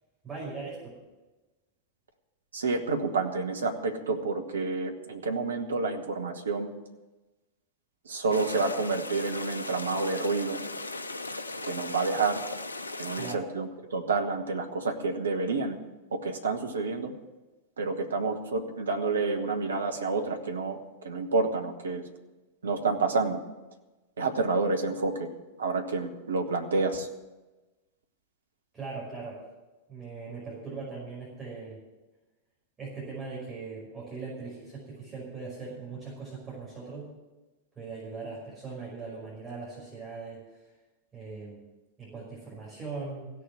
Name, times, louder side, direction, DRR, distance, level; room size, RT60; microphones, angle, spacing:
voice 1, 0.2-1.0 13.2-13.4 28.7-29.4 29.9-31.8 32.8-37.1 37.8-40.4 41.1-41.6 42.0-43.3, right 4 dB, 20° right, -6 dB, 5.4 m, -40 dB
voice 2, 2.5-6.7 8.0-10.6 11.6-12.4 13.0-15.8 16.1-17.1 17.8-22.1 22.6-23.4 24.2-25.3 25.6-27.1, right 3 dB, 70° right, 5 dB, 1.4 m, -29 dB
sound 1, 8.3-13.4, left 2 dB, 80° left, 0.6 m, -37 dB
16.0 x 6.8 x 9.0 m, 1.1 s
figure-of-eight pair, 90°, 0 cm